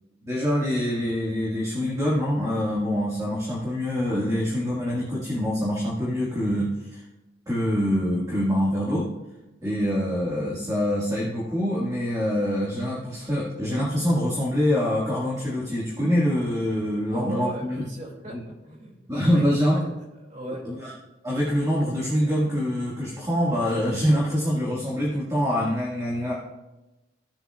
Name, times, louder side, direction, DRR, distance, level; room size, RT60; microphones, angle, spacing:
voice 1, 0.2-7.0 7.5-9.1 9.6-17.9 18.3-18.4 19.1-19.9 20.6-20.9 21.2-26.3, equal, 20° right, -6 dB, 1.9 m, -25 dB
voice 2, 17.1-19.5 19.8-19.9 20.2-20.6, right 1 dB, 40° right, -2 dB, 2.5 m, -38 dB
16.5 x 6.9 x 2.4 m, 1.0 s
head